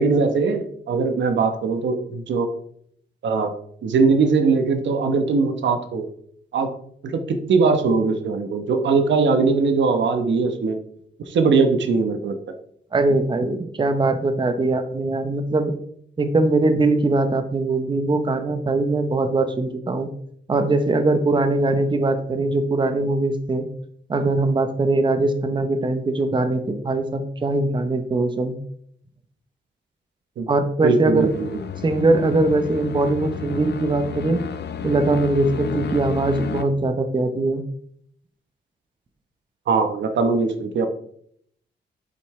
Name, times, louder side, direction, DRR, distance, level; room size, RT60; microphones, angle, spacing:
voice 1, 0.0-2.5 3.2-3.5 3.8-6.0 6.5-6.7 7.0-10.8 11.3-12.4 30.4-30.5 30.8-31.5 39.7-40.9, right 4 dB, 80° right, 7 dB, 1.1 m, -20 dB
voice 2, 12.9-15.7 16.2-20.1 20.5-23.6 24.1-28.6 30.5-31.3 31.8-34.5 34.8-37.6, right 2 dB, 25° right, 8 dB, 0.8 m, -21 dB
sound 1, 31.1-36.6, left 6 dB, 65° left, 0.8 m, -32 dB
8.2 x 7.3 x 3.2 m, 0.66 s
wide cardioid pair, 135°, 19 cm